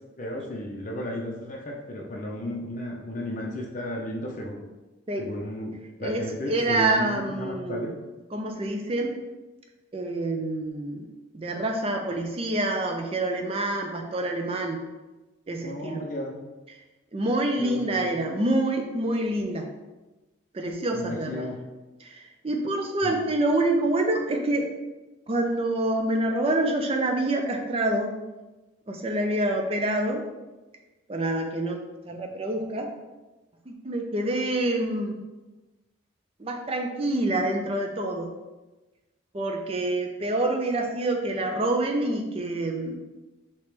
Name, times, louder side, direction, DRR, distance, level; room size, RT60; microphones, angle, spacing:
voice 1, 0.2-4.6 5.2-7.9 15.6-16.3 17.6-18.1 20.9-21.6 23.0-23.1, left 1 dB, 40° left, -1 dB, 0.5 m, -34 dB
voice 2, 6.0-7.9 8.3-9.2 9.9-11.1 11.3-14.8 15.5-16.0 17.1-19.7 20.5-21.4 22.0-24.7 25.3-28.1 28.9-30.2 31.1-31.8 32.0-32.9 33.7-35.2 36.4-38.3 39.3-43.0, right 1 dB, 30° right, 3 dB, 0.5 m, -27 dB
4.8 x 2.9 x 3.3 m, 1.1 s
head